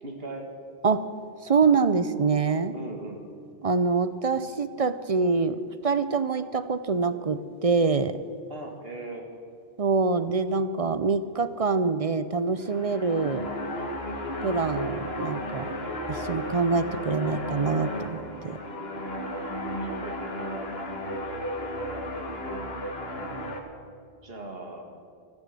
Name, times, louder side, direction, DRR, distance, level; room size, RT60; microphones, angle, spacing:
voice 1, 0.0-0.5 2.7-3.2 8.5-9.3 19.2-20.2 24.2-24.9, right 2 dB, 70° right, 2 dB, 2.3 m, -39 dB
voice 2, 1.4-2.7 3.6-8.2 9.8-13.5 14.4-15.7 16.1-18.6, right 4 dB, 40° right, 13 dB, 0.6 m, -25 dB
sound 1, 12.5-23.6, equal, 80° left, 1.8 m, -34 dB
14.0 x 12.5 x 7.6 m, 2.2 s
omnidirectional pair, 1.0 m